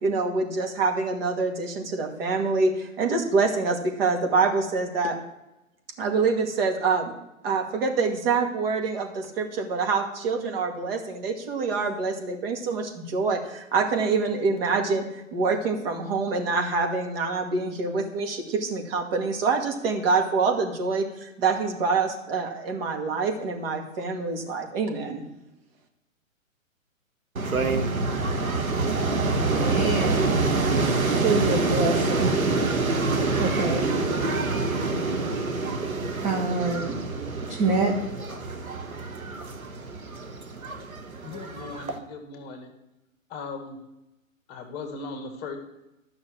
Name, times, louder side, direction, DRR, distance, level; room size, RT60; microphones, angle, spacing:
voice 1, 0.0-5.2 6.0-7.1 7.4-15.1 15.3-25.2, right 4 dB, 45° right, 3 dB, 2.3 m, -26 dB
sound 1, 27.3-42.0, right 3 dB, 85° right, 1.6 m, -26 dB
voice 2, 29.4-30.4 30.7-32.3 33.4-33.9 36.2-37.0 37.4-37.9, right 3 dB, 15° right, 2 dB, 1.0 m, -27 dB
voice 3, 41.2-42.7 43.3-43.8 44.5-45.6, left 4 dB, 25° left, 5 dB, 1.7 m, -38 dB
12.0 x 6.2 x 7.7 m, 0.92 s
hypercardioid pair, 130°, 41 cm